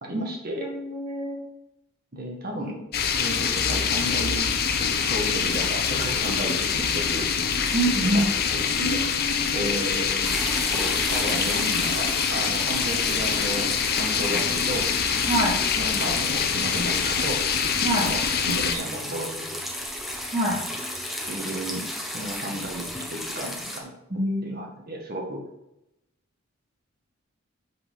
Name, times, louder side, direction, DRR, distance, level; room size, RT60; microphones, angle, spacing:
voice 1, 0.0-0.6 2.1-2.8 3.2-4.5 4.8-7.3 8.0-8.2 8.5-9.0 9.5-10.4 10.7-14.9 15.8-17.4 18.0-19.6 21.3-21.9 22.1-23.9 24.4-25.4, right 1 dB, 50° right, 1 dB, 1.7 m, -33 dB
voice 2, 0.6-1.4 7.7-8.2 8.8-9.7 14.3-14.4 15.3-15.6 17.8-18.1 20.3-20.6 24.1-24.6, right 1 dB, 30° right, -6 dB, 2.8 m, -26 dB
sound 1, 2.9-18.8, left 6 dB, 50° left, 0.8 m, -25 dB
sound 2, 10.2-23.8, equal, ahead, 1.1 m, -34 dB
8.4 x 6.2 x 3.7 m, 0.87 s
head